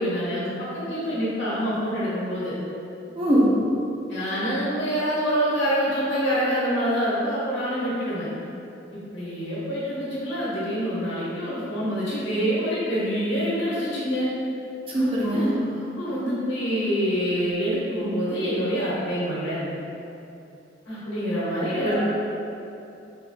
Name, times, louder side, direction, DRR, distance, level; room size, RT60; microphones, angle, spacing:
voice 1, 0.0-2.6 4.1-8.3 8.9-14.3 14.9-19.7 20.8-22.0, equal, 70° left, -9 dB, 1.3 m, -26 dB
voice 2, 3.2-3.6 14.9-15.5 21.8-22.0, equal, 30° right, -6 dB, 0.6 m, -21 dB
4.1 x 3.5 x 2.3 m, 2.8 s
head